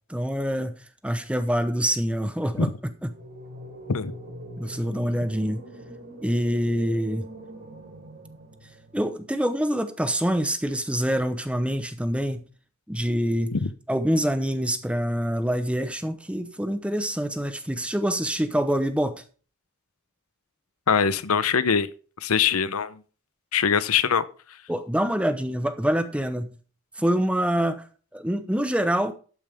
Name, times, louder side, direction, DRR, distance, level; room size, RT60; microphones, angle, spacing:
voice 1, 0.1-0.7 1.0-2.7 3.0-3.1 4.6-5.6 6.2-7.2 8.9-12.4 12.9-13.5 13.9-19.2 24.7-26.5 27.0-27.8 28.1-29.1, equal, 5° right, 0.8 m, -25 dB
sound 1, 3.1-9.2, right 1 dB, 60° right, 4.3 m, -42 dB
voice 2, 20.9-21.9 22.2-23.0 23.5-24.2, left 6 dB, 90° left, 0.7 m, -22 dB
12.0 x 8.9 x 3.5 m
head